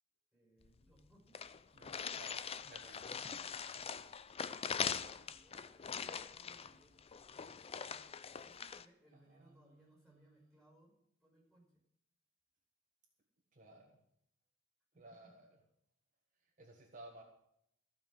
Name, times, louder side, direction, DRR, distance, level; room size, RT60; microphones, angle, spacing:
voice 1, 0.3-1.5 3.7-3.8 4.3-7.1 7.6-10.9 11.2-11.8 14.9-15.3, right 1 dB, ahead, -1 dB, 5.9 m, -68 dB
sound 1, 0.6-0.7 1.0-1.1 1.3-8.9, left 6 dB, 30° left, 0.5 m, -42 dB
voice 2, 1.7-3.2 9.1-10.4 13.5-14.0 15.0-15.5 16.4-17.2, right 1 dB, 40° right, 0 dB, 1.6 m, -58 dB
15.0 x 5.8 x 8.9 m, 0.74 s
head